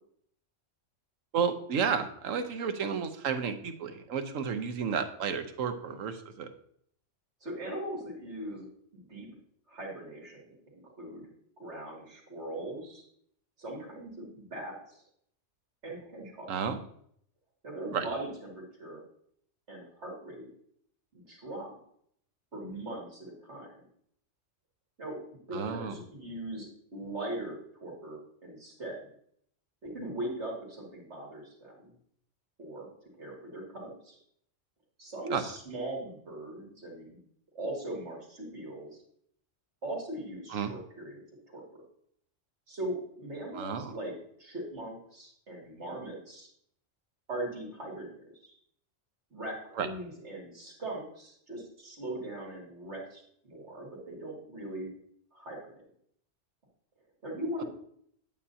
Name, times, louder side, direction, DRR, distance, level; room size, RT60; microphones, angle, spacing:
voice 1, 1.3-6.5 16.5-16.8 17.9-18.0 25.5-26.0 35.3-35.4 40.5-40.7 43.5-43.9 49.8-49.9, right 6 dB, 85° right, 8 dB, 1.2 m, -32 dB
voice 2, 7.4-8.7 8.9-9.3 9.7-11.3 11.6-13.0 13.6-15.0 15.8-16.5 17.6-19.0 19.7-20.5 21.1-21.7 22.5-23.7 25.0-29.0 29.8-31.9 32.6-32.9 33.2-34.2 35.0-37.2 37.5-39.0 39.8-41.8 42.7-46.5 47.3-48.5 49.3-54.9 55.3-55.8 57.2-57.6, right 1 dB, 60° right, -3 dB, 2.9 m, -40 dB
8.9 x 8.6 x 2.8 m, 0.66 s
omnidirectional pair, 1.3 m